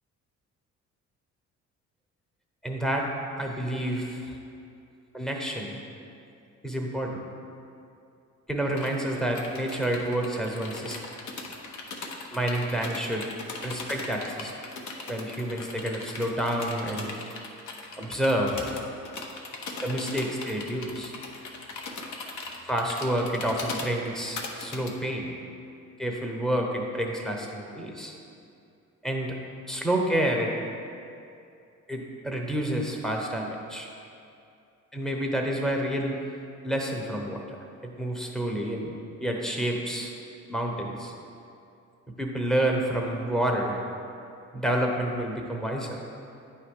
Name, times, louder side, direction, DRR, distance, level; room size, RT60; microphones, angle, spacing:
voice 1, 2.6-3.1 3.4-4.3 5.1-5.8 6.6-7.2 8.5-11.0 12.3-13.3 13.6-14.5 15.1-17.1 18.0-18.7 19.8-21.1 22.7-25.3 26.0-28.1 29.0-29.4 29.7-30.5 31.9-33.9 34.9-36.2 36.6-37.4 38.0-38.9 39.2-40.1 40.5-41.1 42.2-43.8 44.5-46.0, right 1 dB, ahead, 0 dB, 0.9 m, -29 dB
sound 1, 8.8-24.9, left 3 dB, 75° left, 0.8 m, -39 dB
8.8 x 3.3 x 5.0 m, 2.6 s
cardioid pair, 90°, 30 cm